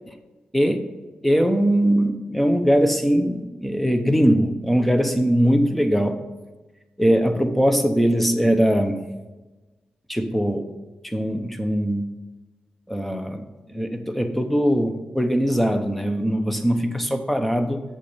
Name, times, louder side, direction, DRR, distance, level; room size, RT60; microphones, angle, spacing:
voice 1, 0.5-0.9 1.2-6.2 7.0-9.0 10.1-10.7 11.0-12.1 12.9-17.8, equal, 5° left, 7 dB, 0.9 m, -21 dB
8.2 x 7.1 x 5.1 m, 1.2 s
wide cardioid pair, 120°, 3 cm